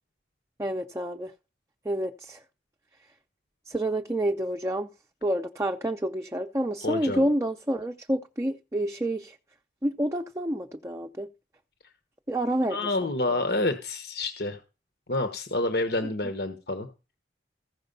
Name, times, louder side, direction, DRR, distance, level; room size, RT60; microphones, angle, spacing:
voice 1, 0.6-1.3 1.8-2.4 3.7-4.9 5.2-9.4 9.8-11.3 12.3-13.4 16.0-16.1, right 1 dB, 15° right, 0.6 m, -29 dB
voice 2, 6.8-7.2 12.7-14.6 15.1-16.9, left 2 dB, 65° left, 1.2 m, -28 dB
15.0 x 6.2 x 5.4 m
head